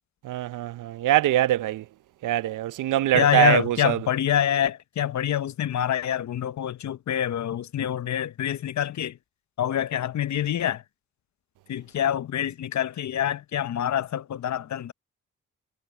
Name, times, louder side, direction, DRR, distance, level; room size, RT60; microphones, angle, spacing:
voice 1, 0.2-1.8 2.2-4.0, right 14 dB, 80° right, 0.7 m, -23 dB
voice 2, 3.1-9.2 9.6-10.8 11.7-14.9, left 10 dB, 65° left, 0.9 m, -26 dB
supercardioid pair, 50°, 31 cm